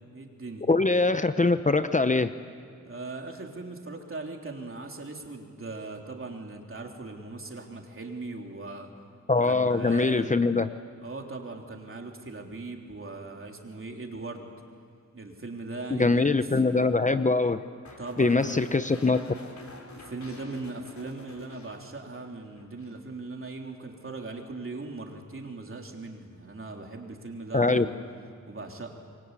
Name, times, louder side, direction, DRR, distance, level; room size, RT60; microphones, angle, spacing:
voice 1, 0.1-0.7 2.9-8.9 9.4-10.4 11.0-14.5 15.1-16.4 18.0-18.6 19.9-28.0 28.5-29.0, right 3 dB, 45° right, 1 dB, 3.6 m, -39 dB
voice 2, 0.7-2.3 9.3-10.7 15.9-17.6 18.2-19.2 27.5-27.9, left 3 dB, 25° left, 10 dB, 0.8 m, -23 dB
sound 1, 17.8-22.3 22.6-23.0, left 2 dB, 65° left, 4.0 m, -47 dB
27.5 x 23.0 x 8.4 m, 2.3 s
wide cardioid pair, 85°, 30 cm